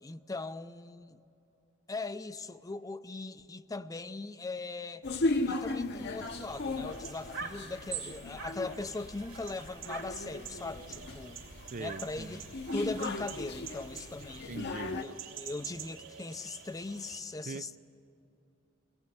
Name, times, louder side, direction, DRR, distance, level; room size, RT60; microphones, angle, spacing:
voice 1, 0.0-1.2 1.9-5.1 5.4-11.4 11.8-12.5 12.7-14.6 15.0-17.8, left 3 dB, 15° left, 0.5 m, -40 dB
sound 1, 5.0-15.0, left 2 dB, 55° left, 0.9 m, -37 dB
sound 2, 6.2-17.2, right 7 dB, 65° right, 2.6 m, -46 dB
voice 2, 11.7-12.4 14.5-15.0 17.5-17.7, right 3 dB, 40° right, 0.5 m, -41 dB
23.5 x 18.0 x 9.4 m
head